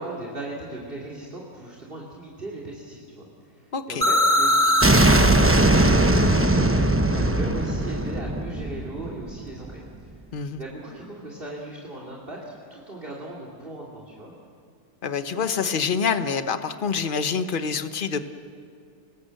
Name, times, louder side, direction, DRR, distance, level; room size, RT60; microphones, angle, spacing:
voice 1, 0.0-6.8 7.1-10.1 10.5-12.4 12.7-14.3, right 2 dB, 40° right, -3 dB, 3.1 m, -37 dB
voice 2, 3.7-4.1 10.3-10.6 15.0-18.2, left 6 dB, 40° left, 9 dB, 1.1 m, -26 dB
sound 1, 4.0-9.7, right 1 dB, 10° right, 0.8 m, -19 dB
29.5 x 20.0 x 7.8 m, 2.3 s
omnidirectional pair, 1.5 m